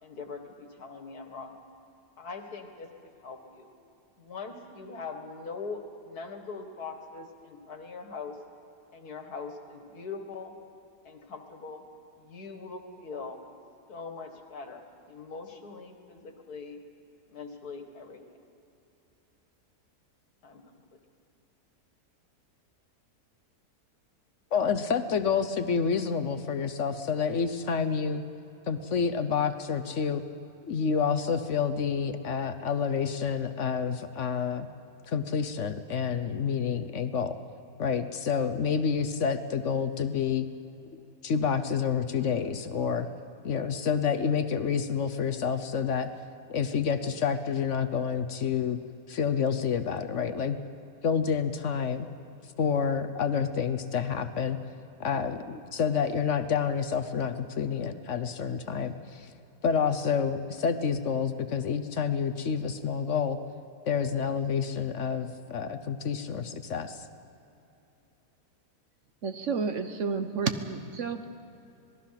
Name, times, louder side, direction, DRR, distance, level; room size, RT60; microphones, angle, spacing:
voice 1, 0.0-1.5 2.2-2.9 3.2-3.7 4.2-8.4 8.9-10.5 11.0-11.8 12.2-13.4 13.9-16.8 17.3-18.2 20.4-20.6, left 4 dB, 80° left, 5 dB, 2.3 m, -41 dB
voice 2, 24.5-28.2 28.7-30.2 30.6-34.7 35.1-37.4 37.8-40.5 40.9-43.1 43.4-46.1 46.5-48.8 49.1-50.6 51.0-52.1 52.6-54.6 55.0-59.3 59.6-63.4 63.9-67.1, left 6 dB, 55° left, 10 dB, 1.1 m, -28 dB
voice 3, 69.2-71.2, right 5 dB, 55° right, 8 dB, 1.3 m, -30 dB
26.0 x 19.0 x 5.9 m, 2.8 s
omnidirectional pair, 1.6 m